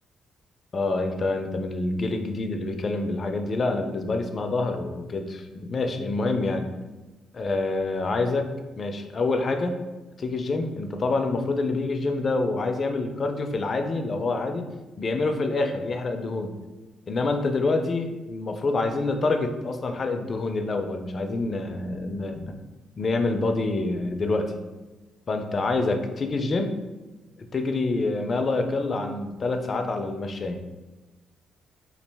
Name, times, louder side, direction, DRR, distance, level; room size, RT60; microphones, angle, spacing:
voice 1, 0.7-6.7 7.3-8.5 8.8-9.8 10.2-14.6 15.0-16.5 17.1-22.5 23.0-24.6 25.3-26.7 27.4-30.6, left 3 dB, 40° left, 5 dB, 0.4 m, -27 dB
3.0 x 2.4 x 3.3 m, 1.1 s
cardioid pair, 90°, 0 cm